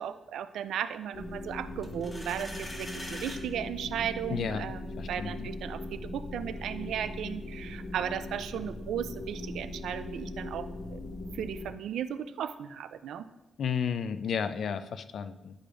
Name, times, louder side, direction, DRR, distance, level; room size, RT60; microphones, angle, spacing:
voice 1, 0.0-11.0 11.3-13.3, right 9 dB, 90° right, 13 dB, 0.3 m, -36 dB
sound 1, 1.1-11.7, left 1 dB, 40° left, 1.0 m, -40 dB
sound 2, 1.8-3.4, left 1 dB, 15° left, 1.0 m, -42 dB
voice 2, 4.3-4.7 5.0-5.5 13.6-15.5, left 7 dB, 65° left, 12 dB, 0.4 m, -32 dB
10.0 x 4.9 x 2.5 m, 0.99 s
cardioid pair, 115°, 0 cm